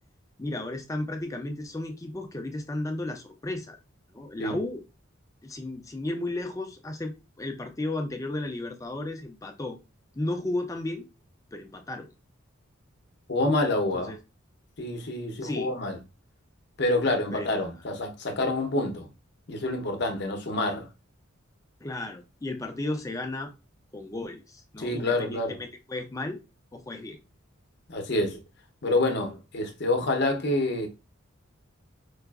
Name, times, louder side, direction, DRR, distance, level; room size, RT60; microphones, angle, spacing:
voice 1, 0.4-3.8 4.1-4.8 5.4-9.8 10.2-11.1 11.5-12.1 13.9-14.2 15.4-15.7 17.3-17.5 21.8-23.5 23.9-26.4 26.7-27.2, left 2 dB, 15° left, 0.4 m, -34 dB
voice 2, 13.3-14.1 14.8-16.0 16.8-19.1 19.5-20.9 24.8-25.6 27.9-28.4 28.8-30.9, left 2 dB, 50° left, 0.7 m, -27 dB
4.7 x 2.4 x 2.3 m
head